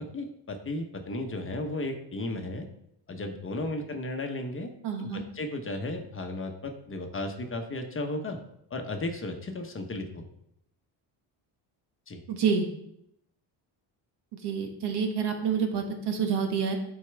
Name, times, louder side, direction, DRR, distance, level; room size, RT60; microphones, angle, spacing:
voice 1, 0.0-2.7 3.1-4.7 5.0-8.4 8.7-10.2 12.1-12.2, left 2 dB, 30° left, 4 dB, 1.0 m, -34 dB
voice 2, 4.8-5.2 12.3-12.7 14.4-16.8, right 6 dB, 60° right, 4 dB, 1.4 m, -28 dB
8.4 x 4.6 x 3.4 m, 0.76 s
cardioid pair, 105°, 44 cm